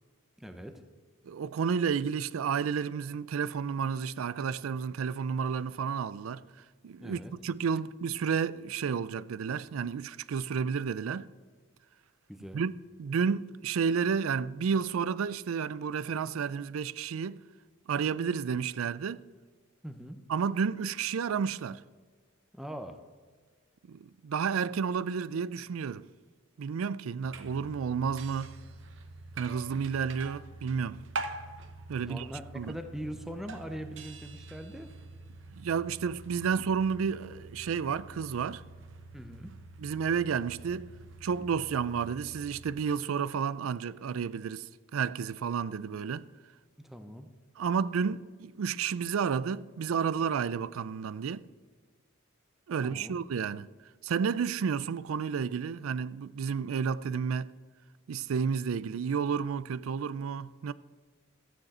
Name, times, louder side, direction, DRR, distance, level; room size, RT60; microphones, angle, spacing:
voice 1, 0.4-0.8 7.0-7.3 12.3-12.6 19.8-20.2 22.5-23.0 32.0-34.9 39.1-39.5 46.8-47.3 52.8-53.2, equal, ahead, 0.7 m, -42 dB
voice 2, 1.2-6.4 6.8-11.3 12.5-12.7 13.0-17.4 17.9-19.2 20.3-21.8 23.9-26.0 26.6-28.5 29.4-31.0 31.9-32.3 32.6-32.7 35.6-38.6 39.8-40.9 41.2-46.3 47.6-51.5 52.7-53.7 54.0-57.5 58.1-60.7, right 6 dB, 85° right, 0.4 m, -31 dB
sound 1, 27.2-42.7, right 3 dB, 65° right, 0.8 m, -45 dB
13.5 x 9.2 x 4.3 m
head